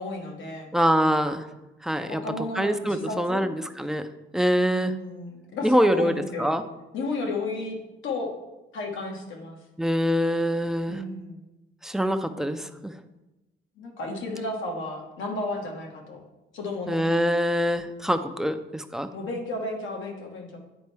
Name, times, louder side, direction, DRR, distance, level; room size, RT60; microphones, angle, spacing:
voice 1, 0.0-0.7 2.1-3.4 4.5-6.5 6.9-7.8 8.0-8.4 8.7-9.6 10.9-11.4 13.8-16.2 16.5-17.0 19.1-20.6, left 2 dB, 75° left, 1 dB, 1.5 m, -33 dB
voice 2, 0.7-1.4 1.8-2.2 2.6-5.0 5.6-6.6 9.8-11.0 11.8-12.9 16.9-19.1, equal, ahead, 8 dB, 0.5 m, -24 dB
9.4 x 4.3 x 3.4 m, 0.99 s
cardioid pair, 90°, 20 cm